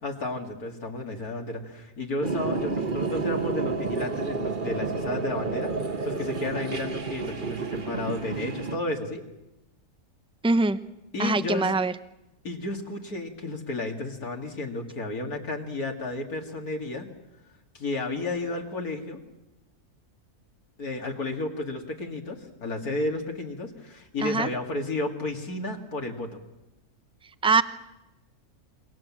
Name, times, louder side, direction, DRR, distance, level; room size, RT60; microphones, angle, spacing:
voice 1, 0.0-9.2 11.1-11.7 12.4-17.1 17.7-19.2 20.8-26.4, left 2 dB, 75° left, 2 dB, 3.1 m, -32 dB
sound 1, 2.2-8.8, right 4 dB, 35° right, 1.4 m, -30 dB
voice 2, 10.4-10.8 11.2-11.9 24.2-24.5 27.4-27.6, right 3 dB, 5° right, 13 dB, 0.4 m, -22 dB
28.0 x 23.5 x 7.5 m, 0.93 s
omnidirectional pair, 1.6 m